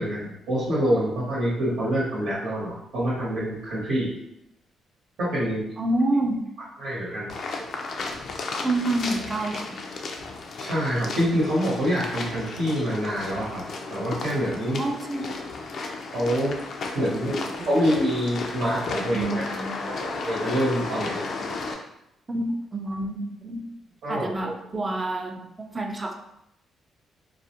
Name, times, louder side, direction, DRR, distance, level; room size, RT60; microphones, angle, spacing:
voice 1, 0.0-4.1 5.2-5.7 6.8-7.3 10.6-13.6 13.9-14.8 16.1-16.5 16.9-17.4 17.6-19.3 20.0-21.2 24.0-24.6, equal, 75° right, -8 dB, 0.9 m, -26 dB
voice 2, 5.8-6.4 8.6-9.8 14.8-15.2 17.3-17.7 19.1-19.9 22.3-23.7 24.1-26.1, right 2 dB, 25° right, 3 dB, 0.4 m, -28 dB
sound 1, 7.3-21.7, left 3 dB, 60° left, 0.3 m, -34 dB
2.3 x 2.0 x 2.8 m, 0.81 s
cardioid pair, 90°, 0 cm